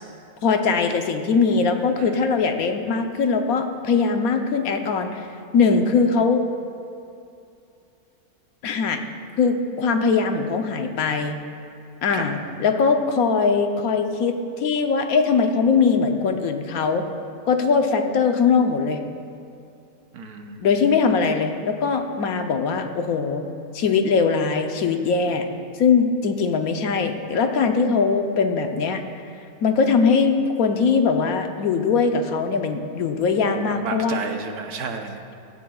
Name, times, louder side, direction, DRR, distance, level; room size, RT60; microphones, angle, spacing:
voice 1, 0.4-5.2 5.5-6.4 8.6-9.0 9.4-11.4 12.0-17.0 17.5-19.0 20.6-23.5 23.7-25.5 25.8-29.0 29.6-34.2, left 5 dB, 70° left, 5 dB, 1.2 m, -21 dB
voice 2, 2.0-2.7 12.1-12.4 20.1-20.7 33.7-35.2, right 5 dB, 85° right, 4 dB, 1.4 m, -33 dB
16.5 x 14.0 x 2.3 m, 2.6 s
omnidirectional pair, 1.6 m